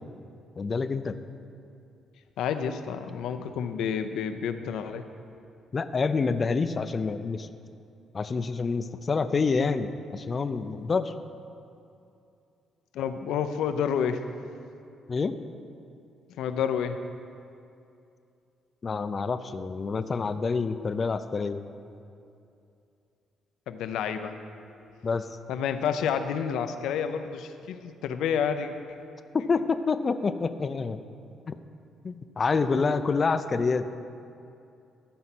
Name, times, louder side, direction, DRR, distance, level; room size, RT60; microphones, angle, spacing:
voice 1, 0.6-1.2 5.7-7.5 8.1-11.1 15.1-15.4 18.8-21.6 25.0-25.3 29.3-31.0 31.5-31.6 32.0-33.9, left 4 dB, 35° left, 11 dB, 0.5 m, -27 dB
voice 2, 2.4-5.1 12.9-14.2 16.4-17.0 23.7-24.6 25.5-29.0, left 7 dB, 85° left, 9 dB, 0.6 m, -29 dB
14.0 x 5.6 x 5.9 m, 2.6 s
cardioid pair, 90°, 0 cm